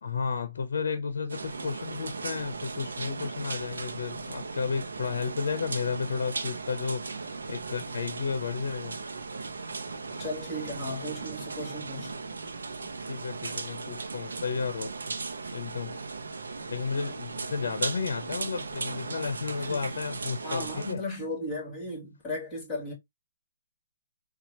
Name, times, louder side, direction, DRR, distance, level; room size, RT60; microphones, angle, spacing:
voice 1, 0.0-9.0 12.8-14.9 15.5-16.0 16.7-21.0, left 5 dB, 70° left, 0.7 m, -33 dB
sound 1, 1.3-20.9, right 4 dB, 90° right, 0.7 m, -37 dB
voice 2, 10.2-12.2 19.7-19.9 20.4-22.9, left 1 dB, 20° left, 2.4 m, -36 dB
4.2 x 2.4 x 2.9 m
hypercardioid pair, 150°, 0 cm